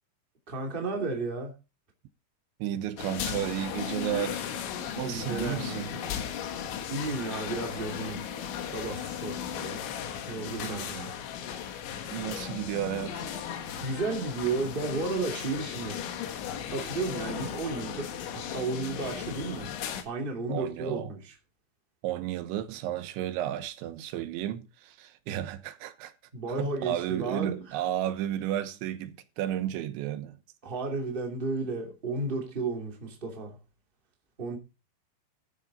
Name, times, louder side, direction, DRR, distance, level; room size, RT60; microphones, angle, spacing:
voice 1, 0.5-1.5 5.0-6.1 6.9-8.2 8.7-9.8 10.3-11.1 13.8-16.1 16.7-19.7 20.0-21.3 26.3-27.8 30.6-33.6 34.4-34.6, right 3 dB, 15° right, 2.0 m, -33 dB
voice 2, 2.6-4.4 5.0-5.9 10.6-10.9 12.1-13.3 20.5-21.1 22.0-26.1 26.5-30.4, right 12 dB, 90° right, 3.5 m, -33 dB
sound 1, 3.0-20.0, left 8 dB, 85° left, 3.9 m, -36 dB
14.0 x 9.2 x 4.1 m
omnidirectional pair, 5.1 m